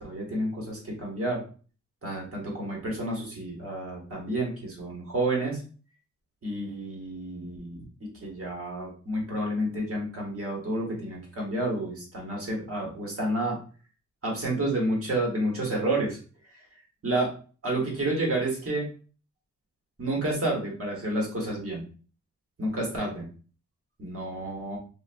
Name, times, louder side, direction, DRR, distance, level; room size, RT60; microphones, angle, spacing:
voice 1, 0.0-1.4 2.0-5.6 6.4-7.8 8.2-13.6 14.2-16.2 17.0-17.3 17.6-18.8 20.0-21.8 22.6-23.3 24.0-24.8, right 1 dB, 50° right, -2 dB, 1.2 m, -30 dB
3.3 x 2.5 x 2.5 m, 0.38 s
wide cardioid pair, 150°, 30 cm